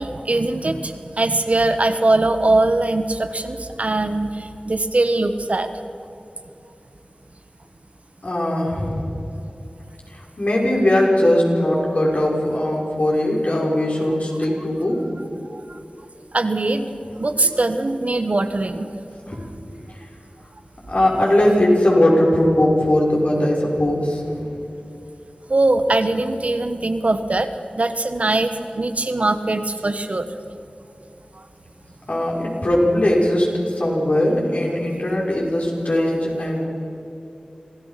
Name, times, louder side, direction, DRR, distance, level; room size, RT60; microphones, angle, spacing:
voice 1, 0.0-5.7 15.5-15.6 16.3-16.9 17.2-18.9 25.5-27.5 27.8-30.3, right 2 dB, 60° right, 8 dB, 1.3 m, -21 dB
voice 2, 8.2-9.1 10.1-15.0 19.3-19.6 20.9-24.6 32.1-36.7, left 1 dB, 60° left, -3 dB, 5.9 m, -19 dB
26.5 x 17.0 x 5.9 m, 2.7 s
wide cardioid pair, 55°, 3 cm